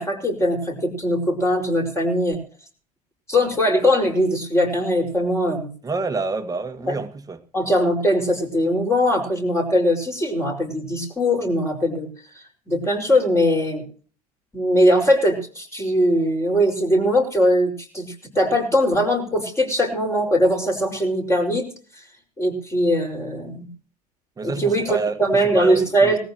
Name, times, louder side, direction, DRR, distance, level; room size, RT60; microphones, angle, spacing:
voice 1, 0.0-2.4 3.3-5.7 6.9-7.0 7.5-12.1 12.7-13.9 14.5-21.7 22.4-23.7 24.4-26.2, equal, 15° left, 5.7 m, -20 dB
voice 2, 5.8-7.4 24.4-25.2 25.4-26.2, right 4 dB, 20° right, 1.8 m, -27 dB
20.0 x 14.5 x 3.1 m
hypercardioid pair, 80°, 20 cm